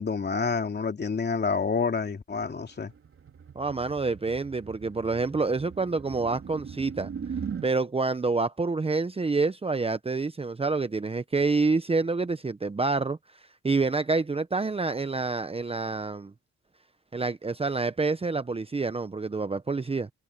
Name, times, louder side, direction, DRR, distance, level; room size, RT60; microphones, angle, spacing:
voice 1, 0.0-2.9, left 5 dB, 35° left, 2.9 m, -28 dB
sound 1, 2.4-7.7, right 7 dB, 45° right, 3.8 m, -40 dB
voice 2, 3.5-7.1 7.6-13.2 13.6-16.3 17.1-20.1, right 3 dB, 20° right, 0.9 m, -27 dB
cardioid pair, 90°, 30 cm